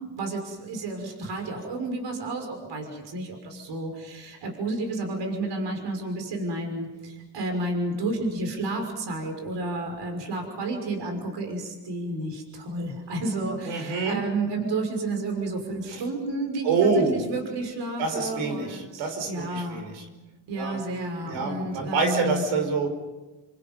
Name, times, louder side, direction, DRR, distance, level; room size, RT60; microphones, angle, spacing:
voice 1, 0.1-19.9 20.5-22.4, right 2 dB, 65° right, 4 dB, 6.3 m, -31 dB
voice 2, 13.6-14.2 15.9-16.0 16.6-17.2 18.0-20.1 20.6-20.8 21.2-22.9, right 4 dB, 90° right, 6 dB, 5.3 m, -26 dB
29.0 x 27.0 x 5.6 m, 1.2 s
cardioid pair, 85°, 45 cm